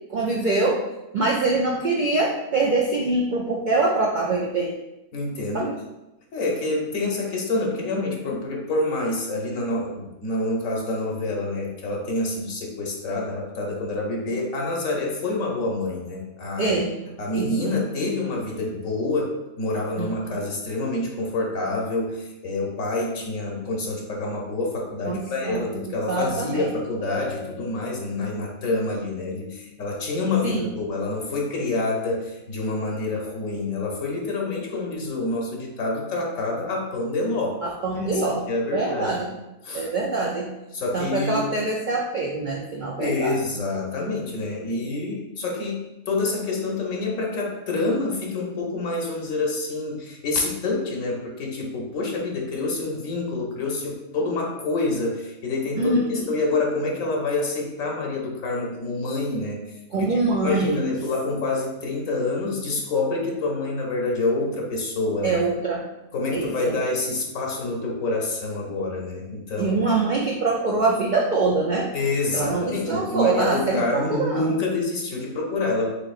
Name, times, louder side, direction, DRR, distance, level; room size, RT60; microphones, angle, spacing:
voice 1, 0.1-0.8 1.1-4.7 5.5-5.7 16.6-16.9 17.3-17.7 20.0-20.3 25.0-26.8 30.4-30.7 37.6-38.4 38.7-39.3 39.7-40.5 40.9-43.4 55.8-56.3 59.9-60.8 65.2-65.8 66.3-66.8 69.6-71.9 72.3-74.5, right 3 dB, 75° right, -2 dB, 0.4 m, -24 dB
voice 2, 5.1-5.7 6.3-16.7 17.2-37.6 37.9-39.2 39.6-39.9 40.7-41.5 43.0-45.8 46.1-59.7 59.9-65.4 66.1-69.9 71.9-75.9, left 2 dB, 70° left, -1 dB, 1.3 m, -27 dB
Bell, 27.0-28.6, left 3 dB, 35° left, 0.6 m, -40 dB
5.2 x 3.8 x 2.4 m, 0.94 s
omnidirectional pair, 1.5 m